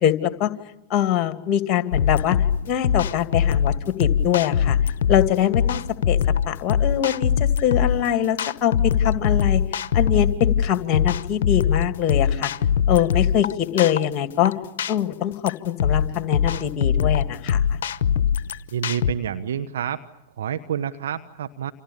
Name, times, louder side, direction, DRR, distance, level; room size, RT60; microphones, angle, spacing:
voice 1, 0.0-0.5 0.9-2.4 2.7-4.8 5.1-5.8 6.1-6.2 6.5-9.6 9.9-12.5 12.9-14.5 14.9-17.6, left 10 dB, 35° left, 10 dB, 2.6 m, -23 dB
sound 1, 1.9-19.1, left 8 dB, 60° left, 1.0 m, -22 dB
voice 2, 18.7-20.0 20.4-21.7, right 9 dB, 65° right, 8 dB, 1.3 m, -28 dB
29.5 x 27.5 x 7.1 m, 0.89 s
figure-of-eight pair, 100°, 0 cm